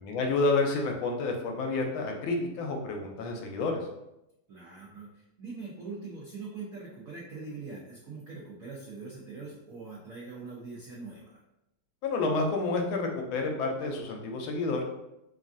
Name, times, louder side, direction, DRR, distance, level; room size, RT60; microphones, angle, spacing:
voice 1, 0.0-3.8 12.0-14.8, left 3 dB, 85° left, 2 dB, 1.4 m, -29 dB
voice 2, 4.5-11.4, right 4 dB, 80° right, -5 dB, 0.7 m, -42 dB
3.3 x 2.3 x 2.5 m, 0.88 s
omnidirectional pair, 2.1 m